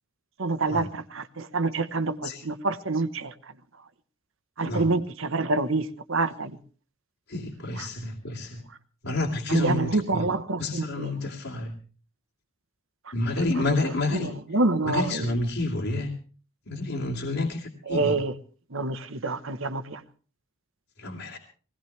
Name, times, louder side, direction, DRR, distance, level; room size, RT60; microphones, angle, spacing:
voice 1, 0.4-3.3 4.6-6.6 7.8-7.9 9.5-11.1 13.6-13.7 14.1-15.3 17.9-18.3 18.7-20.0, right 3 dB, 60° right, 11 dB, 1.2 m, -27 dB
voice 2, 7.3-8.6 9.0-10.3 10.6-11.8 13.1-14.3 14.8-16.1 16.7-18.2 21.0-21.4, left 2 dB, 60° left, -2 dB, 2.8 m, -29 dB
21.5 x 18.0 x 3.4 m, 0.39 s
head